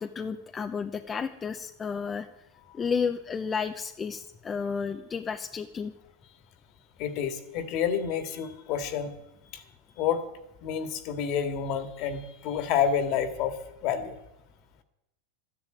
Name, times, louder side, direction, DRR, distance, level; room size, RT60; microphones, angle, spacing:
voice 1, 0.0-2.3 2.7-5.9, left 6 dB, 20° left, 7 dB, 0.8 m, -32 dB
voice 2, 7.0-9.1 9.5-9.6 10.0-10.3 10.6-14.2, left 8 dB, 50° left, 9 dB, 2.0 m, -29 dB
12.5 x 10.5 x 9.2 m, 0.93 s
supercardioid pair, 130°, 0 cm